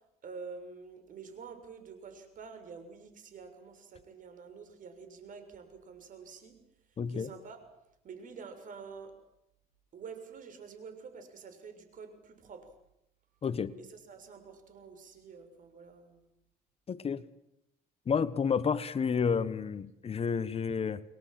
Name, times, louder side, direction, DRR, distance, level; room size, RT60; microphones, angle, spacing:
voice 1, 0.2-6.6 7.1-7.6 8.0-9.1 9.9-12.7 13.8-16.2, right 5 dB, 50° right, 9 dB, 6.6 m, -48 dB
voice 2, 7.0-7.3 13.4-13.8 16.9-17.2 18.1-21.0, left 6 dB, 35° left, 15 dB, 1.3 m, -30 dB
29.5 x 21.5 x 7.7 m, 0.84 s
cardioid pair, 110°, 17 cm